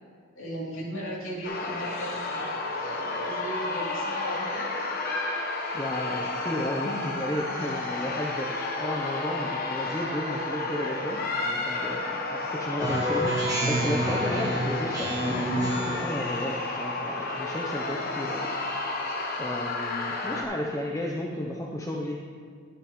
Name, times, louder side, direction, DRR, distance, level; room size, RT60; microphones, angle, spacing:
voice 1, 0.3-4.8, right 1 dB, 70° left, -6 dB, 2.8 m, -36 dB
sound 1, 1.4-20.4, left 3 dB, 45° left, 1.0 m, -31 dB
voice 2, 5.7-18.5 19.4-22.2, left 1 dB, 15° left, -2 dB, 0.6 m, -33 dB
Speech synthesizer, 12.8-16.1, right 1 dB, 15° right, 1.6 m, -28 dB
11.0 x 10.0 x 3.0 m, 2.1 s
head